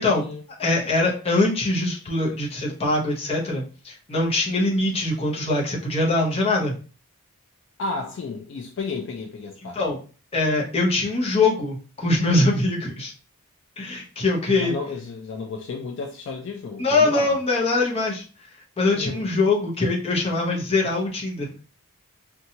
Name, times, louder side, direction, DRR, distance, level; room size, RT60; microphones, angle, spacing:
voice 1, 0.0-0.4 7.8-9.8 14.6-17.4 18.9-19.3, left 4 dB, 55° left, 0.3 m, -32 dB
voice 2, 0.6-6.7 9.7-10.0 10.3-13.1 13.8-14.7 16.8-18.2 18.8-21.5, left 2 dB, 25° left, 0.6 m, -22 dB
2.7 x 2.2 x 2.7 m
head